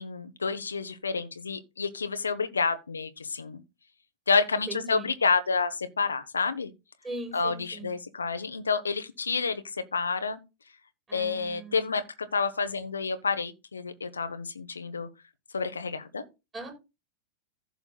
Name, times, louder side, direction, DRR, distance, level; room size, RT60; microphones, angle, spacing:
voice 1, 0.0-3.6 4.3-6.7 7.3-10.4 11.1-15.1 15.5-16.2, left 4 dB, 75° left, 0.8 m, -29 dB
voice 2, 4.5-5.1 7.0-7.9 11.1-11.8 16.5-16.7, right 2 dB, 20° right, 5.8 m, -40 dB
15.5 x 6.8 x 2.2 m
figure-of-eight pair, 90°, 0 cm